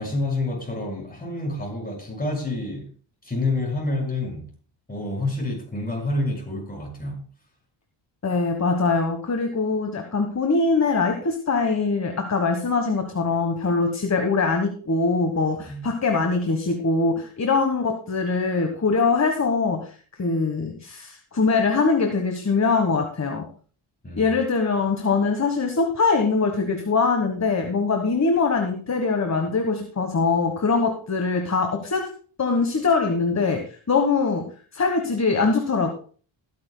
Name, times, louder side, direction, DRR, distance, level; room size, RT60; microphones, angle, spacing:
voice 1, 0.0-2.9 3.2-4.5 4.9-7.2 15.6-15.9 24.0-24.4, left 2 dB, 20° left, 6.2 m, -28 dB
voice 2, 8.2-19.9 20.2-23.5 24.2-32.1 32.4-35.9, left 4 dB, 35° left, 1.4 m, -22 dB
20.5 x 9.8 x 2.2 m
wide cardioid pair, 105°, 48 cm